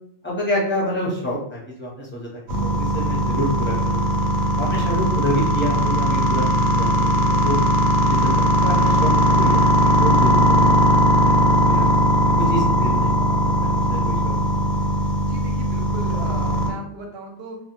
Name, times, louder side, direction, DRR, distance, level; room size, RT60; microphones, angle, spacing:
voice 1, 0.2-4.2 4.6-7.6 8.0-11.9 12.5-13.1 13.9-14.4, equal, 15° left, -6 dB, 0.5 m, -28 dB
sound 1, 2.5-16.7, equal, 90° right, 1.0 m, -19 dB
voice 2, 15.2-17.6, right 2 dB, 60° right, 1 dB, 0.7 m, -36 dB
2.2 x 2.1 x 2.9 m, 0.71 s
omnidirectional pair, 1.3 m